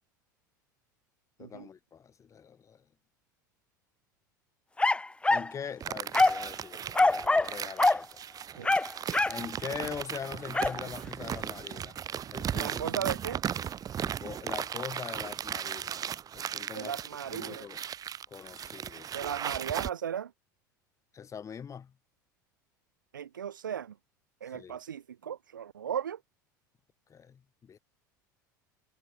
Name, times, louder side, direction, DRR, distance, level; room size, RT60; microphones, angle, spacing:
voice 1, 1.4-2.8 5.3-8.2 9.3-12.0 12.3-13.2 14.0-17.0 17.3-17.8 18.3-19.3 21.1-21.9 24.4-24.8 27.1-27.8, left 7 dB, 30° left, 5.4 m, -43 dB
sound 1, 4.8-5.5 6.1-6.5 6.9-7.5 7.8-8.0 8.6-9.4 10.5-10.8, left 2 dB, 10° left, 1.6 m, -24 dB
sound 2, 5.8-19.9, right 9 dB, 35° right, 4.2 m, -37 dB
voice 2, 12.6-13.4 16.7-17.6 19.1-20.3 23.1-23.9 24.4-26.2, right 9 dB, 80° right, 1.5 m, -36 dB
figure-of-eight pair, 70°, 11 cm